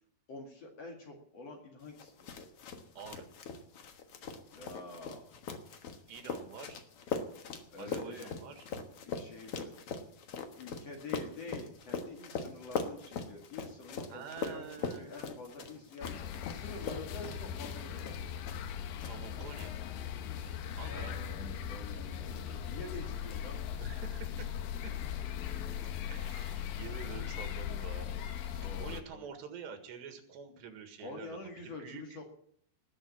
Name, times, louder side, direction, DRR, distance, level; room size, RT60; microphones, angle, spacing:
voice 1, 0.3-2.3 4.5-5.3 7.7-8.4 9.0-9.8 10.5-16.2 16.5-18.1 20.8-23.6 28.5-29.3 31.0-32.2, left 3 dB, 45° left, 2 dB, 2.5 m, -47 dB
sound 1, 2.0-18.7 19.0-19.7, left 5 dB, 90° left, 1.2 m, -41 dB
voice 2, 3.0-3.3 6.1-6.8 7.8-8.7 14.1-15.5 15.7-15.8 19.0-19.8 20.8-21.3 23.8-24.5 24.8-24.9 26.1-31.4 31.6-32.0, right 7 dB, 85° right, 7 dB, 4.0 m, -47 dB
sound 2, 16.0-29.0, left 9 dB, 70° left, 2.4 m, -39 dB
19.5 x 7.4 x 8.6 m, 0.65 s
omnidirectional pair, 4.8 m